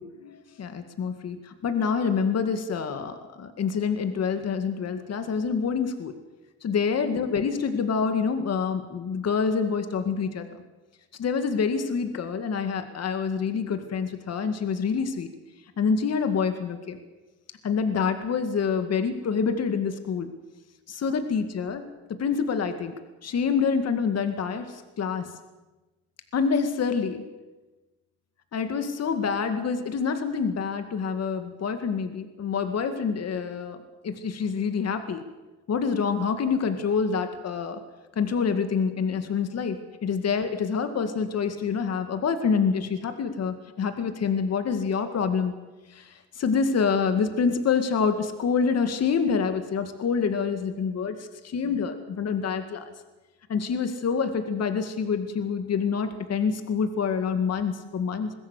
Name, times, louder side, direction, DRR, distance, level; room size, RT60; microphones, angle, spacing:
voice 1, 0.0-6.1 6.6-10.5 11.2-15.3 15.8-17.0 17.6-20.3 20.9-22.9 23.2-25.3 26.3-27.2 28.5-33.8 34.0-35.2 35.7-37.8 38.2-45.5 45.9-51.2 51.4-52.8 53.5-58.3, left 6 dB, 55° left, 8 dB, 2.1 m, -27 dB
21.5 x 16.0 x 8.3 m, 1.1 s
cardioid pair, 90°, 30 cm